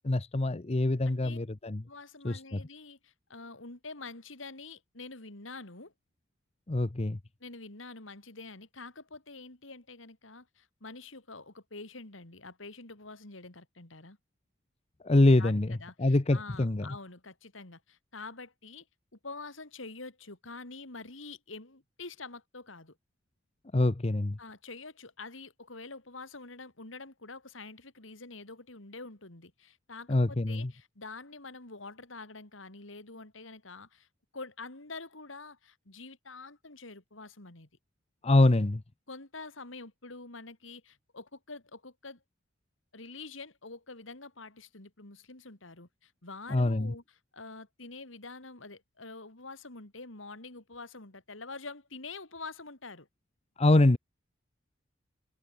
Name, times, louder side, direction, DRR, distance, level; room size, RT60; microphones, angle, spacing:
voice 1, 0.0-1.8 2.2-2.6 6.7-7.2 15.0-16.9 23.7-24.4 30.1-30.7 38.2-38.8 46.5-46.9 53.6-54.0, left 2 dB, 35° left, 0.8 m, -25 dB
voice 2, 1.1-1.4 1.8-5.9 7.4-14.2 15.4-18.9 19.2-23.0 24.4-34.1 34.3-37.7 39.1-42.2 42.9-53.1, left 3 dB, 85° left, 3.4 m, -46 dB
head